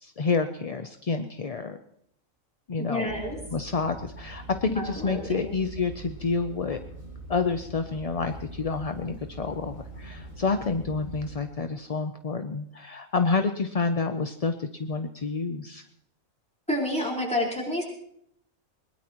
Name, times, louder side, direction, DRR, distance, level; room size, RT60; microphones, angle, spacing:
voice 1, 0.0-1.8 2.7-3.1 3.5-6.8 7.3-15.8, left 4 dB, 40° left, 8 dB, 0.5 m, -29 dB
voice 2, 2.8-3.4 4.7-5.5 16.7-17.8, left 1 dB, 5° left, -3 dB, 4.6 m, -29 dB
sound 1, 3.1-11.4, right 2 dB, 85° left, 8.2 m, -43 dB
21.5 x 20.0 x 3.0 m, 0.70 s
omnidirectional pair, 1.4 m